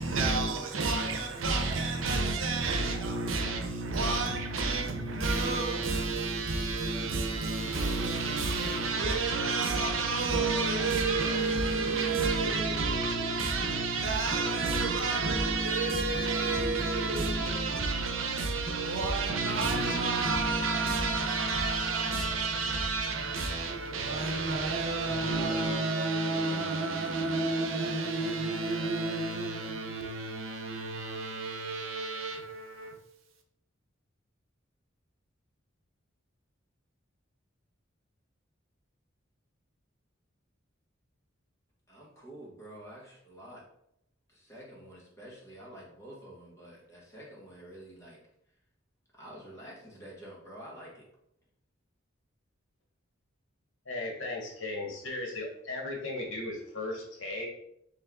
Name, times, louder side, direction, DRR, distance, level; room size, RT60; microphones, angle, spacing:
voice 1, 0.0-32.9, right 3 dB, 85° right, 0.8 m, -30 dB
voice 2, 41.9-43.6 44.3-48.2 49.1-51.1, right 1 dB, 15° left, 1.3 m, -48 dB
voice 3, 53.8-57.5, left 2 dB, 75° left, 1.2 m, -36 dB
3.5 x 3.2 x 3.6 m
head